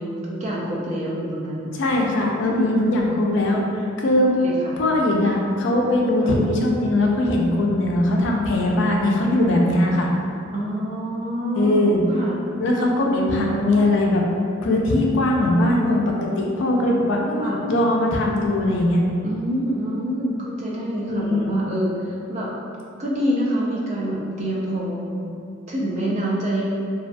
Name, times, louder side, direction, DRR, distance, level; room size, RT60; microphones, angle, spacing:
voice 1, 0.0-1.8 2.5-2.6 4.4-4.7 6.2-6.4 8.6-8.8 10.5-12.4 13.1-14.0 17.4-17.6 19.2-22.5 23.0-25.2 25.7-26.6, right 1 dB, 35° right, -5 dB, 0.4 m, -26 dB
voice 2, 1.8-4.3 4.8-10.1 11.6-12.0 12.6-14.2 14.6-19.0 21.1-21.6, left 1 dB, 60° left, -1 dB, 0.3 m, -20 dB
2.4 x 2.2 x 2.5 m, 2.5 s
head